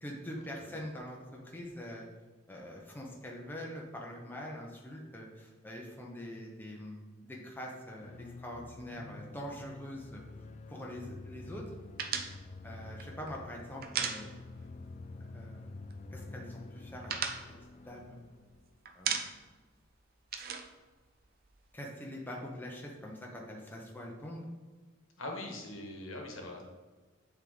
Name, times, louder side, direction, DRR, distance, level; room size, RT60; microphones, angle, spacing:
voice 1, 0.0-2.1 2.5-10.2 10.7-11.7 12.6-14.4 15.3-15.6 16.1-17.1 17.8-18.3 18.9-19.4 21.7-24.4, equal, 10° left, -2 dB, 0.7 m, -44 dB
sound 1, 8.0-18.8, left 3 dB, 35° left, 0.3 m, -49 dB
sound 2, 12.0-14.8 15.0-15.2 15.5-16.2 16.5-18.5 18.9-19.6 19.9-21.7, right 6 dB, 45° right, 0.5 m, -37 dB
voice 2, 25.2-26.6, left 1 dB, 65° left, 1 dB, 1.2 m, -42 dB
8.7 x 3.5 x 3.9 m, 1.3 s
head